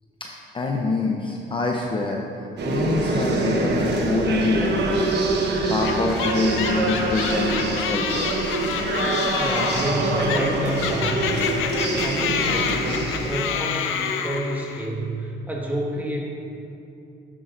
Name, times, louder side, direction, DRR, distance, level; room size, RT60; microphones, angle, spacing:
voice 1, 0.2-5.1 5.6-8.3, left 3 dB, 25° left, -1 dB, 0.7 m, -26 dB
sound 1, 2.6-13.5, right 2 dB, 60° right, 1.0 m, -25 dB
sound 2, 5.8-14.9, left 8 dB, 85° left, 0.5 m, -28 dB
voice 2, 9.4-11.7 12.0-16.2, equal, 10° right, -3 dB, 1.6 m, -28 dB
10.0 x 7.7 x 2.6 m, 2.7 s
cardioid pair, 90°, 20 cm